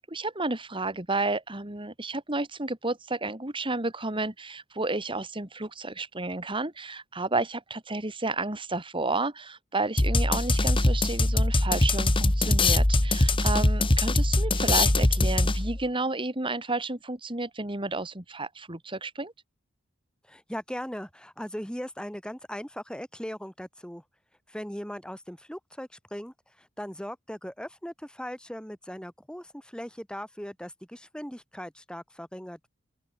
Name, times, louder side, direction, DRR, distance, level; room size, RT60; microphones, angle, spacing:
voice 1, 0.0-19.3, right 2 dB, 25° right, 2.8 m, -31 dB
sound 1, 10.0-15.8, left 2 dB, 25° left, 1.5 m, -22 dB
voice 2, 20.3-24.0 24.5-32.7, equal, 5° left, 7.0 m, -39 dB
open air
head